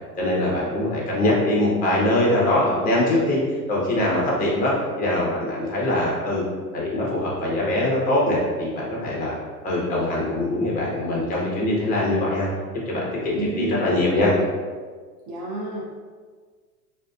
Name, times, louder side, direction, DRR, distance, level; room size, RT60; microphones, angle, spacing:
voice 1, 0.2-3.4 3.7-6.4 6.7-9.4 9.6-12.5 12.9-14.3, left 1 dB, 20° left, -4 dB, 0.6 m, -22 dB
voice 2, 13.4-14.5 15.3-15.9, right 2 dB, 30° right, -4 dB, 0.6 m, -30 dB
2.4 x 2.3 x 2.3 m, 1.6 s
figure-of-eight pair, 95°, 48 cm